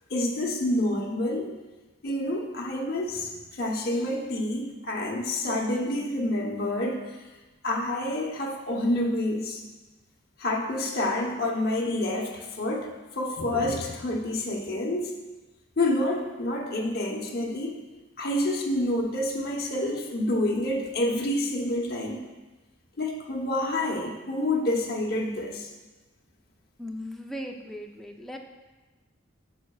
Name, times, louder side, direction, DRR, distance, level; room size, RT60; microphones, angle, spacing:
voice 1, 0.1-1.5 2.0-7.0 7.6-9.6 10.4-12.9 13.1-15.1 15.8-17.8 18.2-22.2 23.0-25.7, left 1 dB, 50° left, -2 dB, 0.9 m, -28 dB
voice 2, 26.8-28.4, equal, ahead, 1 dB, 0.5 m, -38 dB
11.5 x 6.5 x 2.4 m, 1.2 s
head